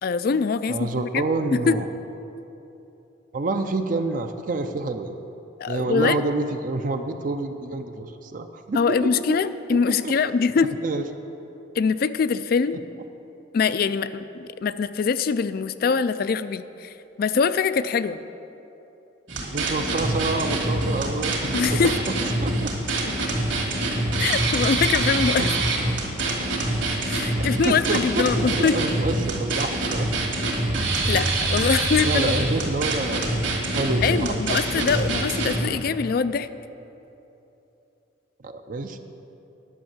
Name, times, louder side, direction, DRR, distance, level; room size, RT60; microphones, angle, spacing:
voice 1, 0.0-1.2 1.5-1.8 5.6-6.2 8.7-10.7 11.8-12.8 13.5-16.9 17.2-18.2 21.5-21.9 24.2-25.4 27.1-28.8 31.1-32.5 34.0-36.5, left 5 dB, 50° left, 14 dB, 0.3 m, -23 dB
voice 2, 0.7-1.8 3.3-5.2 5.7-9.4 9.7-10.1 10.8-11.0 19.5-21.8 22.2-22.7 23.0-23.1 25.4-25.5 26.3-26.5 27.7-30.1 31.1-31.2 31.6-31.7 32.0-33.3 33.8-34.9 38.4-39.0, right 2 dB, 45° right, 7 dB, 0.5 m, -28 dB
sound 1, 19.3-35.6, right 2 dB, 70° right, 2.2 m, -25 dB
10.5 x 6.3 x 7.4 m, 3.0 s
head